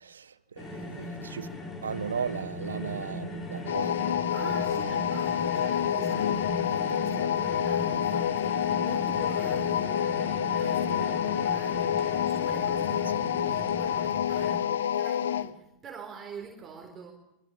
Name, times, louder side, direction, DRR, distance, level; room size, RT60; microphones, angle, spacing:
voice 1, 0.0-1.5 1.8-4.2 4.5-4.9, right 6 dB, 70° right, 1.4 m, -36 dB
sound 1, 0.6-14.5, left 1 dB, 25° left, 6.2 m, -37 dB
sound 2, 3.7-15.5, left 10 dB, 65° left, 1.0 m, -28 dB
voice 2, 4.3-17.1, right 6 dB, 25° right, 4.2 m, -46 dB
25.5 x 24.0 x 7.3 m
figure-of-eight pair, 90°, 0 cm